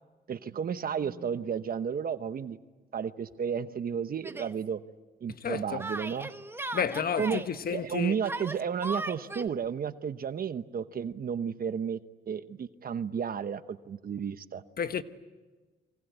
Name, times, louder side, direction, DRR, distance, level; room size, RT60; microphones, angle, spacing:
voice 1, 0.3-2.6 2.9-4.8 5.2-6.3 7.2-7.4 7.7-12.0 12.3-14.6, right 7 dB, 50° right, 1.0 m, -32 dB
Yell, 4.2-4.5 5.8-7.5 8.2-9.5, right 2 dB, 10° right, 1.2 m, -37 dB
voice 2, 5.3-5.8 6.7-8.2 14.8-15.0, left 7 dB, 50° left, 1.3 m, -31 dB
28.5 x 24.0 x 8.2 m
cardioid pair, 90°, 20 cm